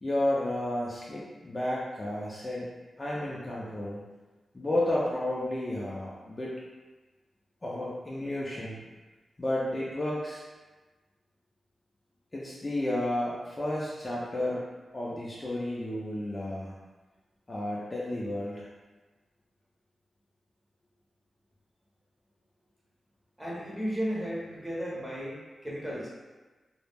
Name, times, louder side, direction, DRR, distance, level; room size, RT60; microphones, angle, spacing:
voice 1, 0.0-2.7 3.0-4.0 4.5-6.5 7.6-8.8 9.4-10.4 12.3-14.6 14.9-16.7 17.5-18.7, left 1 dB, 25° left, -6 dB, 0.4 m, -32 dB
voice 2, 23.4-26.1, equal, 10° right, -6 dB, 0.7 m, -34 dB
2.3 x 2.0 x 3.2 m, 1.2 s
wide cardioid pair, 105°, 0 cm